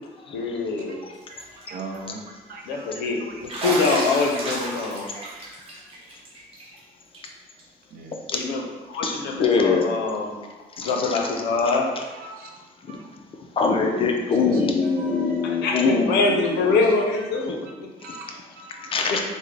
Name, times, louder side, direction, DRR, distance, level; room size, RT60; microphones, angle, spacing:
voice 1, 0.3-1.0 2.6-5.1 8.3-10.4 10.8-11.9 15.4-17.9 18.3-18.4, left 3 dB, 80° left, 1 dB, 0.6 m, -24 dB
Bathtub (filling or washing), 1.2-1.6 1.9-2.0 3.5-6.8 7.1-7.3 7.6-7.7 9.1-9.2 10.9-11.0, right 2 dB, 35° right, 0.8 m, -32 dB
voice 2, 1.3-2.9 3.2-3.3 4.4-4.6 4.9-5.2 7.9-8.2 10.9-11.5 12.0-12.5 12.9-13.1 14.3-14.4 15.0-15.3 16.7-16.8 18.0-18.9, right 3 dB, 60° right, 1 dB, 0.6 m, -40 dB
voice 3, 9.0-9.9 10.8-11.2 12.9-13.0 13.6-16.8 18.9-19.2, left 4 dB, 35° left, 3 dB, 0.4 m, -23 dB
3.6 x 2.1 x 3.2 m, 1.2 s
cardioid pair, 110°, 17 cm